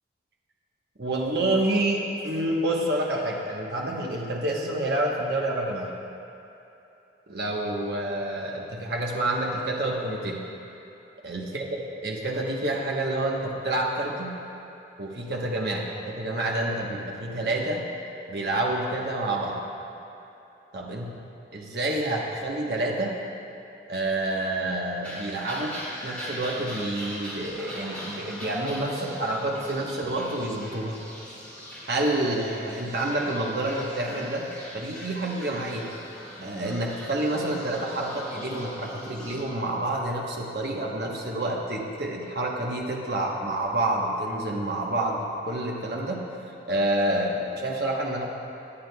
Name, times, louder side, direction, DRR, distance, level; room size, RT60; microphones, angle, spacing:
voice 1, 1.0-5.9 7.3-10.4 11.2-11.7 12.0-14.4 15.0-17.8 18.3-19.6 20.7-21.1 21.5-23.1 23.9-25.8 26.0-31.0 31.9-34.5 34.7-35.9 36.4-46.2 46.7-48.2, right 1 dB, 60° right, -2 dB, 1.1 m, -28 dB
sound 1, 25.0-39.4, equal, 5° left, 2.5 m, -41 dB
18.5 x 10.0 x 2.3 m, 3.0 s
head